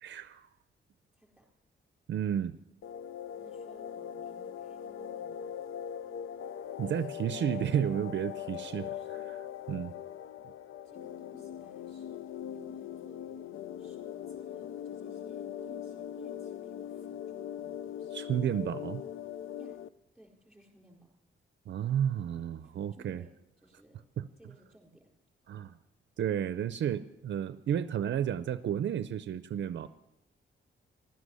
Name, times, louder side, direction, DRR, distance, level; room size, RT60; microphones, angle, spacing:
voice 1, 0.0-0.5 2.1-2.6 6.8-8.9 9.7-9.9 18.1-19.0 21.7-23.2 24.2-24.3 25.5-25.8 26.2-29.9, right 9 dB, 60° right, 12 dB, 0.5 m, -32 dB
voice 2, 1.1-1.5 3.4-5.4 6.8-7.1 8.5-10.4 10.8-13.5 13.8-18.2 19.5-19.8 20.1-21.1 22.6-24.0 24.4-25.1, right 1 dB, ahead, -1 dB, 4.2 m, -59 dB
sound 1, 2.8-19.9, left 9 dB, 85° left, 0.5 m, -41 dB
15.0 x 12.5 x 6.4 m, 0.91 s
wide cardioid pair, 170°, 20 cm